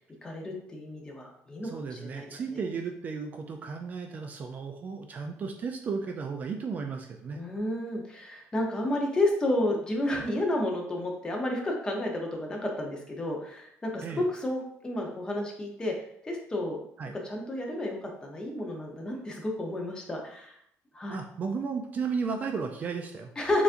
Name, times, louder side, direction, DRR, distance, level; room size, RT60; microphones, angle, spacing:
voice 1, 0.2-2.4 7.3-15.9 16.2-16.8 17.2-20.6 20.9-21.2 23.4-23.6, left 1 dB, 15° left, 0 dB, 0.7 m, -31 dB
voice 2, 1.6-7.4 14.0-14.2 17.0-17.2 21.1-23.3, right 5 dB, 30° right, 4 dB, 0.3 m, -34 dB
6.8 x 2.5 x 2.5 m, 0.71 s
cardioid pair, 160°, 5 cm